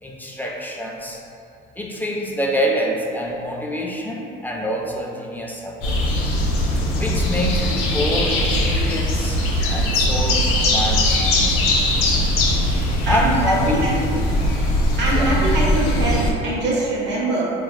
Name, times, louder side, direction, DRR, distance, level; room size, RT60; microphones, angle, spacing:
voice 1, 0.0-1.2 1.8-6.0 6.9-9.4 9.7-11.8 13.1-13.9 15.1-15.3, equal, 10° left, -2 dB, 0.3 m, -26 dB
sound 1, 5.8-16.3, left 1 dB, 80° left, 0.5 m, -20 dB
voice 2, 15.0-17.5, right 2 dB, 60° right, -5 dB, 0.8 m, -23 dB
3.4 x 2.4 x 2.2 m, 2.7 s
supercardioid pair, 85°, 21 cm